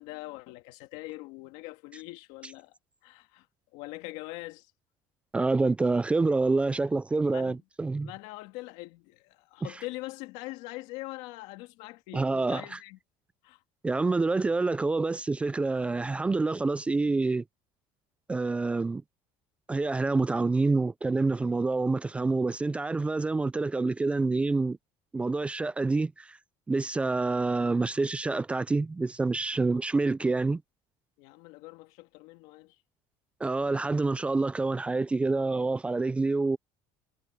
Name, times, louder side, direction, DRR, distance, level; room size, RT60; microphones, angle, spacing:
voice 1, 0.0-2.7 3.0-3.5 3.7-4.7 7.3-7.6 8.0-13.0 13.4-13.6 29.5-29.8 31.2-32.8, left 20 dB, 85° left, 2.0 m, -43 dB
voice 2, 5.3-8.1 12.1-12.8 13.8-17.4 18.3-19.0 19.7-24.8 25.1-26.4 26.7-30.6 33.4-36.6, right 3 dB, 10° right, 0.4 m, -27 dB
cardioid pair, 165°, 11 cm